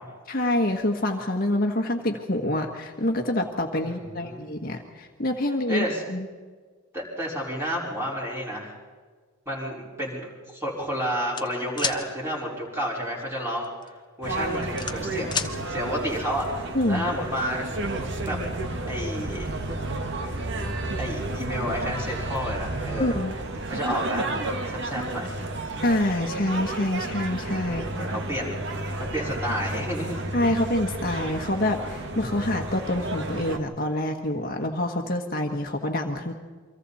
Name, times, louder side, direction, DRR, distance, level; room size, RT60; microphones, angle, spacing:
voice 1, 0.3-5.8 6.1-6.3 16.7-17.0 23.0-23.3 25.8-27.8 30.3-36.3, left 1 dB, 45° left, 3 dB, 1.4 m, -26 dB
voice 2, 3.8-4.4 5.7-6.0 6.9-8.7 9.4-13.9 14.2-17.7 18.0-18.4 18.9-19.5 21.0-23.2 23.7-25.4 27.6-28.6 29.0-30.2, equal, 10° right, -3 dB, 5.0 m, -31 dB
sound 1, 11.3-12.0 13.6-13.9 14.3-15.5, left 6 dB, 20° left, 1.1 m, -29 dB
sound 2, 14.2-33.6, right 2 dB, 55° right, 1.7 m, -32 dB
sound 3, 17.8-23.2, right 2 dB, 75° right, 1.5 m, -36 dB
29.5 x 24.5 x 4.2 m, 1.5 s
head